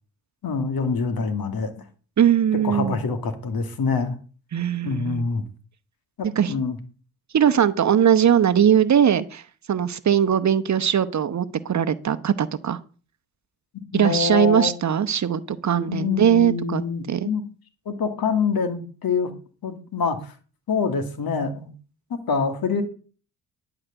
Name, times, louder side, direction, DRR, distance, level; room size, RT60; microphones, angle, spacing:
voice 1, 0.4-1.7 2.6-4.2 4.8-5.4 6.2-6.8 13.9-14.7 15.9-17.4 17.9-19.3 19.6-20.3 20.7-21.7 22.1-22.8, left 5 dB, 60° left, 2.2 m, -25 dB
voice 2, 2.2-3.0 4.5-5.2 6.4-6.5 7.3-9.4 9.7-12.8 13.9-16.8 17.1-17.3, right 9 dB, 45° right, 0.9 m, -20 dB
11.0 x 4.9 x 8.0 m
supercardioid pair, 60°, 41 cm